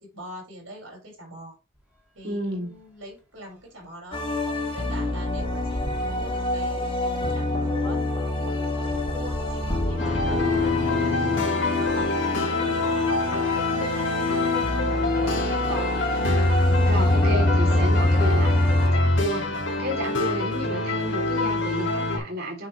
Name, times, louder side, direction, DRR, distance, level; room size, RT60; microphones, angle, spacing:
voice 1, 0.1-1.5 2.1-4.2 4.7-5.8 6.1-8.0 9.1-13.6 15.0-16.0, right 1 dB, 70° right, 4.9 m, -42 dB
sound 1, 1.7-1.9 2.3-2.4 2.7-12.2 12.9-14.3 15.0-15.1 15.3-15.4 17.1-17.3 17.9-18.1 18.5-19.8, equal, 10° right, 2.2 m, -40 dB
voice 2, 2.2-2.7 16.9-18.6 18.9-19.5 19.8-22.7, equal, 50° right, 3.2 m, -32 dB
sound 2, 4.1-18.9, left 3 dB, 25° left, 1.6 m, -27 dB
sound 3, 10.0-22.2, left 1 dB, 65° left, 1.6 m, -24 dB
8.7 x 5.0 x 3.3 m
head